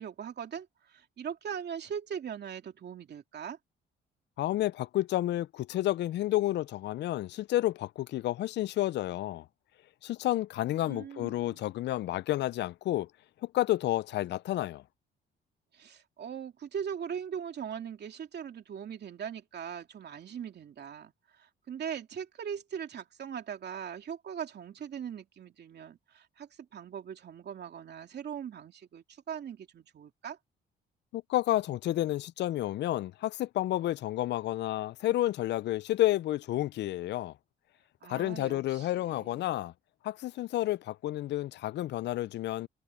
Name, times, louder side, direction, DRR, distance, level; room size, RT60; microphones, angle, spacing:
voice 1, 0.0-3.6 10.8-11.7 15.7-30.4 38.0-39.5, right 8 dB, 55° right, 2.8 m, -40 dB
voice 2, 4.4-9.4 10.0-13.1 13.5-14.8 31.1-37.3 38.1-39.7 40.0-42.7, left 14 dB, 60° left, 0.4 m, -30 dB
cardioid pair, 90°, 20 cm